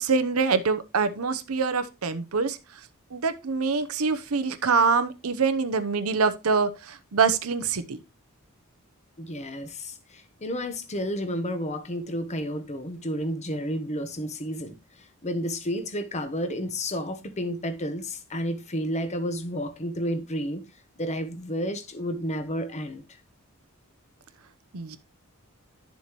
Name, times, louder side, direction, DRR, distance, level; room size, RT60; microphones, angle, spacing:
voice 1, 0.0-2.6 3.1-8.0 24.7-25.0, right 5 dB, 85° right, 0.8 m, -25 dB
voice 2, 9.2-20.6 21.0-23.0, equal, 30° left, 1.0 m, -31 dB
10.5 x 7.1 x 3.0 m
head